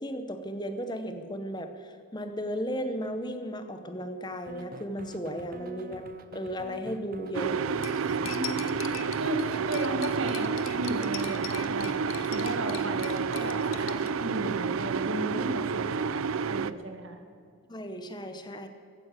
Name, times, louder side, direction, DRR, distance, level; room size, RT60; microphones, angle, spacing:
voice 1, 0.0-6.1 6.3-7.6 17.7-18.7, equal, 20° left, 8 dB, 0.9 m, -35 dB
sound 1, 4.5-12.0, right 3 dB, 45° right, 0.8 m, -45 dB
sound 2, 7.3-16.7, right 5 dB, 90° right, 0.5 m, -30 dB
Cutlery silverware, 7.8-14.1, left 12 dB, 80° left, 0.8 m, -42 dB
voice 2, 8.2-17.2, right 1 dB, 75° right, 5 dB, 1.8 m, -35 dB
15.0 x 9.6 x 8.1 m, 2.4 s
head